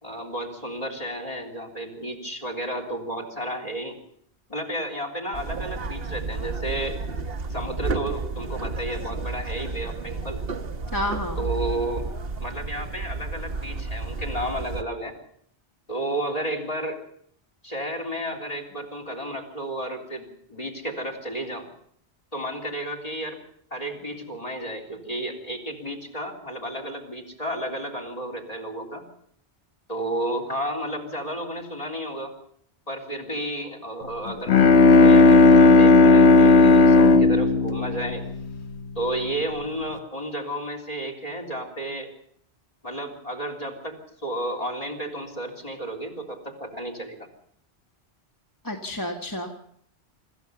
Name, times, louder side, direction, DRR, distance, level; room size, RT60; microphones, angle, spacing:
voice 1, 0.0-4.0 4.5-7.0 7.5-10.4 11.4-12.1 12.4-15.1 15.9-17.0 17.6-20.2 20.5-21.7 22.3-23.4 23.7-29.0 29.9-32.3 32.9-34.5 35.0-38.3 39.0-42.1 42.8-47.2, right 1 dB, 35° left, 5 dB, 3.6 m, -32 dB
sound 1, 5.3-14.8, right 3 dB, 60° right, 1.4 m, -32 dB
voice 2, 10.9-11.4 48.6-49.5, left 1 dB, 20° left, 1 dB, 1.7 m, -30 dB
Bowed string instrument, 34.3-39.0, left 3 dB, 80° left, 1.3 m, -14 dB
25.5 x 14.5 x 7.0 m, 0.68 s
omnidirectional pair, 1.1 m